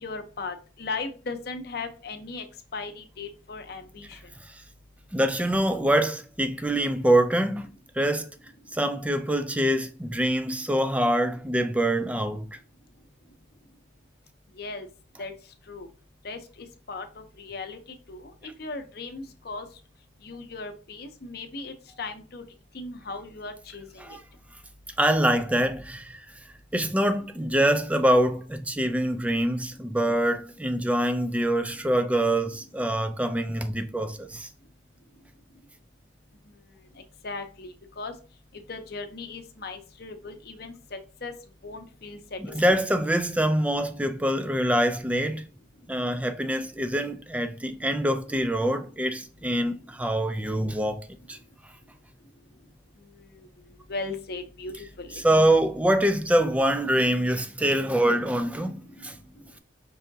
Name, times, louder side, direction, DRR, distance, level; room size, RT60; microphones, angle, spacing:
voice 1, 0.0-2.4 2.7-4.2 14.6-14.9 15.2-15.3 15.7-15.9 16.2-17.8 18.1-19.7 20.2-22.4 22.7-23.8 37.2-38.1 38.7-41.3 41.6-42.4 42.7-42.8 53.3-53.5 53.9-55.2, left 3 dB, 50° left, 0.7 m, -37 dB
voice 2, 5.1-7.7 8.0-8.3 8.7-12.5 24.0-24.2 25.0-26.2 26.7-34.5 42.5-45.4 45.9-51.4 55.2-59.1, right 1 dB, 5° right, 0.3 m, -25 dB
5.4 x 3.4 x 2.7 m
head